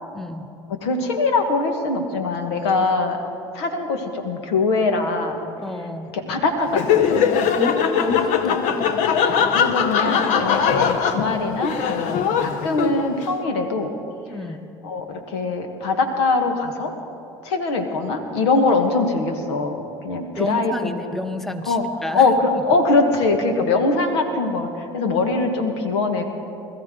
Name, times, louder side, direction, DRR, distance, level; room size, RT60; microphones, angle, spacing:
voice 1, 0.1-0.5 5.6-6.2 7.6-9.0 14.3-14.7 20.4-22.2 23.6-23.7, left 1 dB, ahead, 8 dB, 1.0 m, -30 dB
voice 2, 0.8-3.2 3.5-5.4 6.1-7.2 9.3-13.9 14.8-16.9 17.4-21.0 21.6-21.8 22.1-26.2, left 3 dB, 80° left, 5 dB, 1.5 m, -22 dB
Laughter, 6.7-13.2, left 7 dB, 60° left, 1.0 m, -21 dB
21.0 x 13.5 x 3.8 m, 2.6 s
hypercardioid pair, 70°, 14 cm